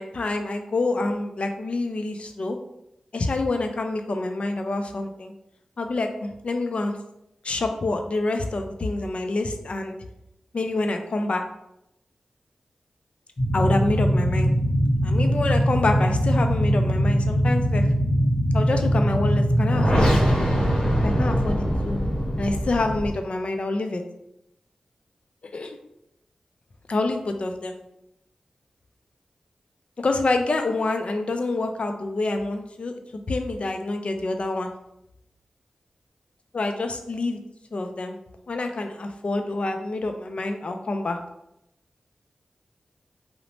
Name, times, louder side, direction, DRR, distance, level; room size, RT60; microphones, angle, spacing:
voice 1, 0.0-2.6 3.1-5.3 5.8-6.9 7.4-9.9 10.5-11.4 13.5-14.5 15.0-17.9 18.5-20.4 21.0-22.0 22.4-24.0 25.5-25.8 26.9-27.8 30.0-33.0 33.3-34.7 36.5-37.4 37.7-38.2 38.5-41.2, left 2 dB, 60° left, 5 dB, 0.4 m, -27 dB
sound 1, 13.4-23.1, equal, 40° left, 0.9 m, -21 dB
2.8 x 2.0 x 3.0 m, 0.83 s
cardioid pair, 45°, 2 cm